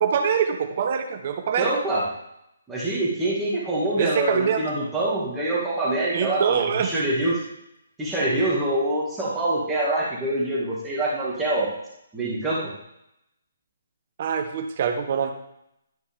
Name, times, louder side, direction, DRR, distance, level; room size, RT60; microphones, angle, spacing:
voice 1, 0.0-1.7 4.0-4.6 6.1-6.9 14.2-15.3, right 7 dB, 45° right, 6 dB, 1.1 m, -24 dB
voice 2, 1.6-2.0 2.7-7.4 8.0-11.7 12.1-12.6, right 1 dB, 10° right, -7 dB, 2.2 m, -25 dB
12.0 x 6.1 x 3.6 m, 0.79 s
hypercardioid pair, 155°, 0 cm